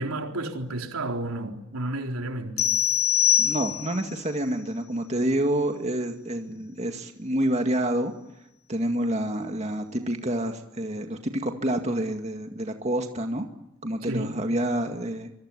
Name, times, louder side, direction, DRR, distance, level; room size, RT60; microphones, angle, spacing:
voice 1, 0.0-2.7 14.0-14.4, right 1 dB, 90° right, 3.9 m, -31 dB
sound 1, 2.6-4.1, left 10 dB, 50° left, 3.5 m, -23 dB
voice 2, 3.4-8.1 8.7-13.5 13.8-15.3, right 1 dB, 30° right, 2.1 m, -28 dB
25.5 x 23.5 x 9.9 m
head